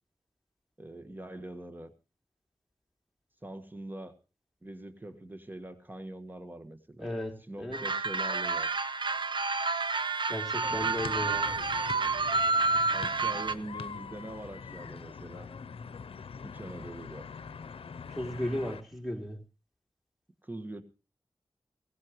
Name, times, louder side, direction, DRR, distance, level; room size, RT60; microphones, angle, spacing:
voice 1, 0.8-1.9 3.4-4.1 4.6-7.1 7.5-8.7 10.7-11.0 12.9-15.5 16.4-17.3 20.4-20.8, right 1 dB, 20° right, 1.7 m, -43 dB
voice 2, 7.0-7.8 10.3-11.5 18.1-19.4, left 1 dB, ahead, 3.2 m, -35 dB
sound 1, 7.7-13.5, right 3 dB, 60° right, 0.8 m, -29 dB
sound 2, 10.6-18.8, left 5 dB, 85° left, 0.7 m, -44 dB
17.5 x 16.5 x 3.1 m
cardioid pair, 55°, 9 cm